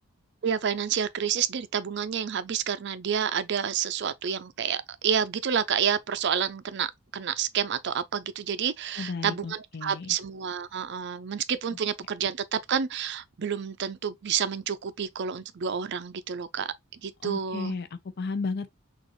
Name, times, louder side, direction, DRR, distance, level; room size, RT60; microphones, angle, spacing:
voice 1, 0.4-17.8, right 7 dB, 50° right, 0.4 m, -29 dB
voice 2, 9.0-10.1 17.2-18.7, left 4 dB, 50° left, 0.6 m, -34 dB
6.1 x 2.5 x 3.0 m
head